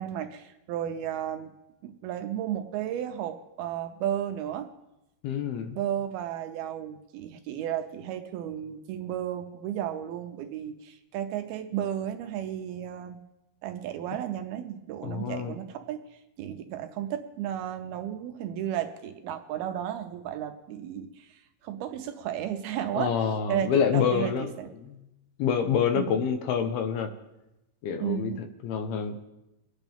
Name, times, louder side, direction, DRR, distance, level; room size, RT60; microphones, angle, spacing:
voice 1, 0.0-1.5 1.8-4.7 5.8-13.2 13.6-16.0 16.4-23.1 23.5-24.7 26.0-26.2 28.0-28.4, right 10 dB, 80° right, 6 dB, 2.4 m, -33 dB
voice 2, 5.2-5.8 15.0-15.6 22.9-24.5 24.8-25.0 25.4-27.1 27.8-29.2, left 7 dB, 75° left, 7 dB, 2.7 m, -27 dB
24.5 x 9.3 x 3.5 m, 0.92 s
omnidirectional pair, 4.9 m